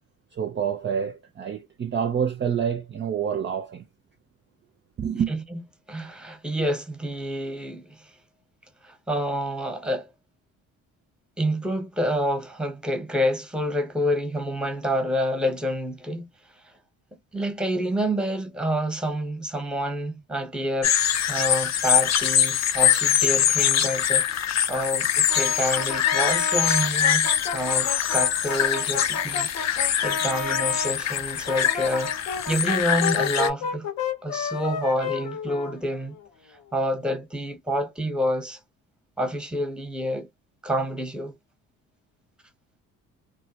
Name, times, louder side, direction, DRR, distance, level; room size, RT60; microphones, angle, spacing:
voice 1, 0.3-3.8 5.0-5.3, right 8 dB, 35° right, 0.4 m, -27 dB
voice 2, 5.3-5.6 5.9-8.1 8.8-10.1 11.4-16.3 17.3-20.9 21.3-33.9 34.2-36.2 36.7-38.6 39.2-40.3 40.6-41.4, equal, ahead, 0.8 m, -28 dB
sound 1, 20.8-33.5, left 9 dB, 50° left, 0.5 m, -23 dB
Brass instrument, 25.3-30.9 31.5-36.2, left 5 dB, 80° left, 1.0 m, -31 dB
2.2 x 2.0 x 2.7 m
supercardioid pair, 75°, 35 cm